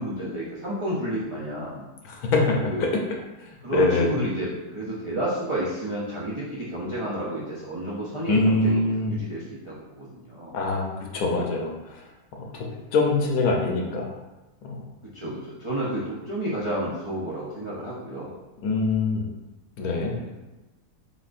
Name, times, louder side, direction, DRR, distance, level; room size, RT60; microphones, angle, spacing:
voice 1, 0.0-1.8 2.6-2.9 3.6-8.8 9.0-10.5 12.6-12.8 15.1-18.3 20.2-20.3, right 1 dB, 55° right, -8 dB, 0.3 m, -31 dB
voice 2, 2.0-2.9 3.4-4.1 8.3-9.2 10.5-12.0 12.4-14.1 14.6-14.9 18.6-19.3 19.8-20.1, left 3 dB, 70° left, 0 dB, 1.1 m, -24 dB
4.2 x 3.7 x 2.5 m, 1.1 s
omnidirectional pair, 1.7 m